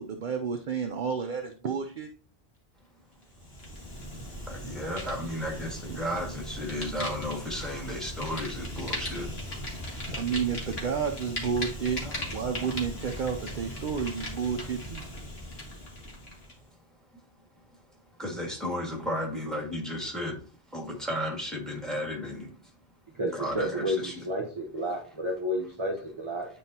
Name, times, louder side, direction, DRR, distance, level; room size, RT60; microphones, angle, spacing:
voice 1, 0.0-2.1 5.9-6.0 10.1-15.0, right 6 dB, 55° right, 0.7 m, -31 dB
Fire, 3.2-16.6, left 1 dB, 80° left, 2.0 m, -38 dB
voice 2, 4.5-9.3 12.0-12.1 18.2-20.4 20.7-22.6 23.3-24.2, equal, ahead, 1.9 m, -34 dB
voice 3, 23.1-26.5, equal, 30° right, 1.0 m, -31 dB
9.3 x 4.4 x 2.8 m
omnidirectional pair, 1.0 m